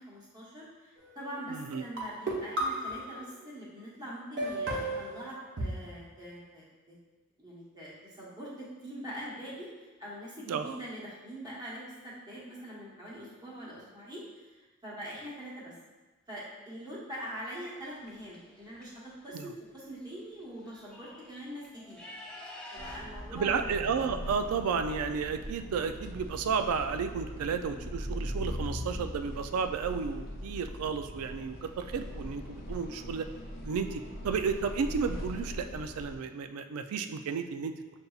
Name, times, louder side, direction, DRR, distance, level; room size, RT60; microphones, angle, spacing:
voice 1, 0.0-7.0 7.4-15.7 16.3-22.0 22.7-23.7, equal, 20° right, -7 dB, 1.1 m, -43 dB
sound 1, 1.0-1.4 2.0-3.4 4.4-5.7, right 1 dB, 55° right, 0.9 m, -34 dB
voice 2, 1.5-1.8 10.5-10.8 19.3-19.5 23.3-33.3 33.6-37.7, right 5 dB, 75° right, 8 dB, 0.3 m, -32 dB
sound 2, 17.8-18.8 20.0-20.1 20.4-23.0, left 1 dB, 5° left, 0.6 m, -48 dB
sound 3, 22.8-36.2, equal, 45° left, 0.5 m, -40 dB
6.6 x 2.7 x 2.3 m, 1.2 s
head